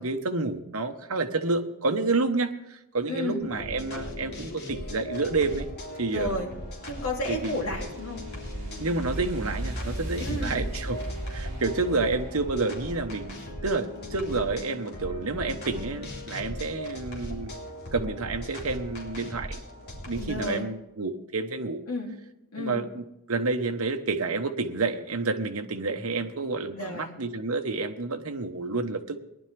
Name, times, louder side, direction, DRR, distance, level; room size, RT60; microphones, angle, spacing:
voice 1, 0.0-5.7 6.0-6.4 7.3-7.6 8.8-11.0 11.3-17.5 17.9-19.6 20.1-21.8 22.6-29.2, right 3 dB, 70° right, 6 dB, 1.2 m, -29 dB
voice 2, 3.1-3.4 6.1-6.5 6.9-8.2 10.2-10.6 20.2-20.7 21.9-22.1 22.5-22.8 26.7-27.1, left 1 dB, 70° left, -2 dB, 3.2 m, -32 dB
sound 1, 3.4-20.6, left 1 dB, 50° left, 3.2 m, -39 dB
sound 2, 6.5-13.5, right 1 dB, 40° right, 6.0 m, -38 dB
19.5 x 11.5 x 3.4 m, 0.88 s
head